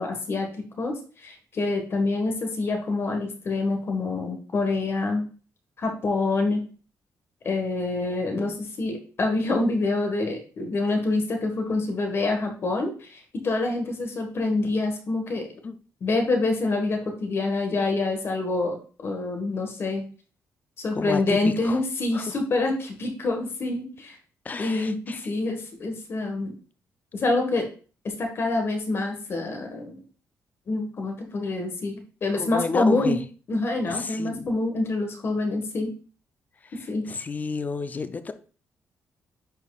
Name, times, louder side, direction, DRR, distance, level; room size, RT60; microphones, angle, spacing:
voice 1, 0.0-5.2 5.8-6.6 7.4-15.5 16.0-20.0 20.8-24.2 24.6-26.5 27.1-27.6 28.0-30.0 30.7-33.2 33.5-35.9 36.9-37.1, left 2 dB, 45° left, 3 dB, 1.4 m, -26 dB
voice 2, 20.9-21.8 22.1-22.4 24.4-25.3 32.3-33.2 33.9-34.5 36.6-38.3, left 4 dB, 30° left, 11 dB, 0.5 m, -32 dB
10.5 x 4.6 x 2.4 m, 0.38 s
cardioid pair, 130°, 6 cm